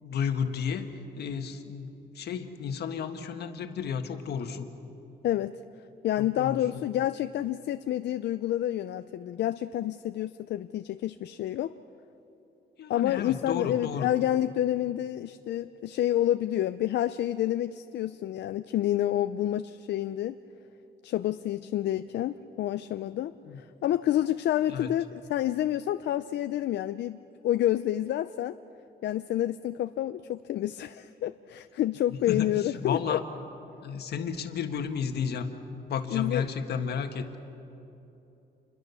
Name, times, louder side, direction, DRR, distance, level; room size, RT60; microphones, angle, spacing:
voice 1, 0.0-0.9 1.2-1.9 2.1-4.7 6.2-6.8 12.8-14.1 23.5-23.6 24.7-24.9 32.3-32.5 32.8-33.2 33.8-35.5 35.9-37.4, left 7 dB, 70° left, 6 dB, 1.6 m, -32 dB
voice 2, 5.2-5.6 6.0-11.7 12.9-20.4 21.0-28.6 29.0-33.2 36.1-36.5, left 12 dB, 85° left, 11 dB, 0.5 m, -29 dB
28.0 x 22.0 x 7.0 m, 2.9 s
wide cardioid pair, 165°, 18 cm